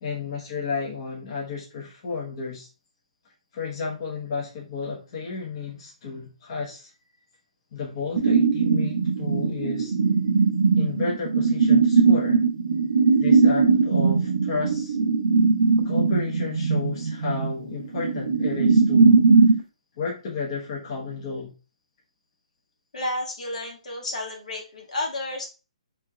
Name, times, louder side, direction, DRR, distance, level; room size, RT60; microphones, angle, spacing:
voice 1, 0.0-2.7 3.5-6.9 7.7-10.0 10.7-12.4 13.2-15.0 15.8-19.3 20.0-21.5, left 4 dB, 40° left, 0.8 m, -32 dB
sound 1, 8.2-19.6, right 4 dB, 80° right, 0.6 m, -20 dB
voice 2, 22.9-25.5, left 2 dB, 75° left, 1.3 m, -31 dB
3.5 x 3.2 x 2.2 m
hypercardioid pair, 155°, 4 cm